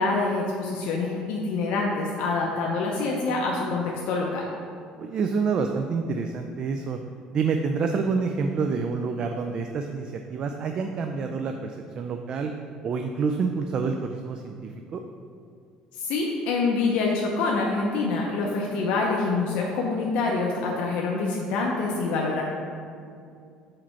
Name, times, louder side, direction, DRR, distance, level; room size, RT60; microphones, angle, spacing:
voice 1, 0.0-4.4 15.9-22.4, left 3 dB, 75° left, -2 dB, 0.7 m, -26 dB
voice 2, 5.0-7.0 7.3-12.5 12.8-15.0, right 5 dB, 40° right, 5 dB, 0.3 m, -28 dB
4.9 x 4.3 x 5.7 m, 2.3 s
cardioid pair, 145°, 2 cm